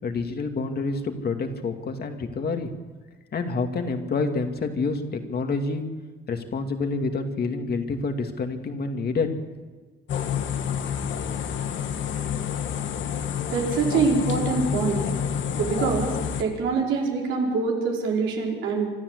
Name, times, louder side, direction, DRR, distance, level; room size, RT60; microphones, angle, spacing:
voice 1, 0.0-2.7 3.3-5.8 6.3-9.3, left 4 dB, 50° left, 5 dB, 2.5 m, -28 dB
sound 1, 10.1-16.4, left 8 dB, 70° left, 1.8 m, -28 dB
voice 2, 13.5-15.0 15.6-18.9, right 4 dB, 90° right, 0 dB, 4.8 m, -25 dB
25.5 x 12.5 x 8.2 m, 1.3 s
cardioid pair, 90°, 20 cm